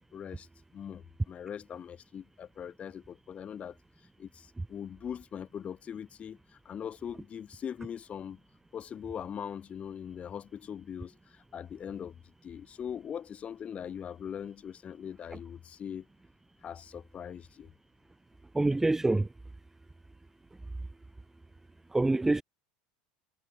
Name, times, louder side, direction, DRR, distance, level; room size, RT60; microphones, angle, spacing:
voice 1, 0.1-0.5 0.7-3.8 4.2-8.4 8.7-16.1 16.6-17.7, left 8 dB, 30° left, 5.5 m, -41 dB
voice 2, 18.5-19.3 21.9-22.4, right 2 dB, 10° right, 1.9 m, -25 dB
supercardioid pair, 125°, 4 cm